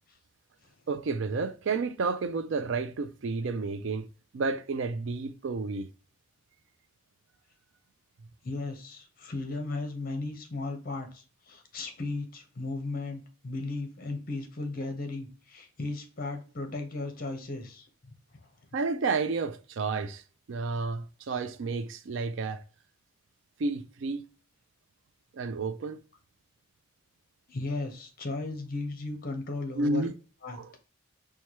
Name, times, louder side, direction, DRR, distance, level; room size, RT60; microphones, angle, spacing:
voice 1, 0.9-4.1 4.3-5.9 18.7-20.2 20.5-22.6 23.6-24.2 25.3-26.0 29.7-30.1 30.5-30.7, right 3 dB, 60° right, 0.4 m, -31 dB
voice 2, 8.4-17.9 27.5-30.1 30.4-30.6, left 2 dB, 40° left, 0.8 m, -36 dB
4.4 x 2.3 x 2.9 m
head